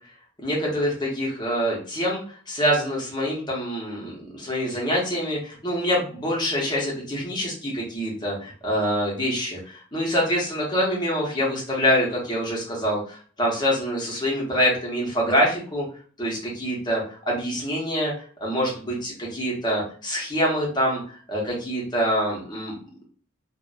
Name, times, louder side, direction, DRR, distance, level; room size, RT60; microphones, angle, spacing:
voice 1, 0.4-15.8 16.2-21.0 21.3-22.8, equal, 20° left, -3 dB, 0.8 m, -25 dB
2.5 x 2.1 x 2.4 m, 0.43 s
head